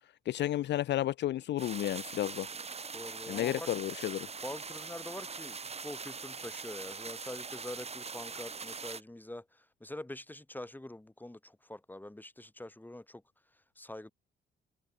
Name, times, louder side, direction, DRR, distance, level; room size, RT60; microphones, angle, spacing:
voice 1, 0.3-2.5 3.3-4.3, left 13 dB, 60° left, 0.5 m, -32 dB
sound 1, 1.6-9.0, right 5 dB, 30° right, 2.5 m, -42 dB
voice 2, 2.9-3.7 4.4-13.2 13.8-14.1, left 1 dB, 10° left, 6.2 m, -45 dB
cardioid pair, 90°, 20 cm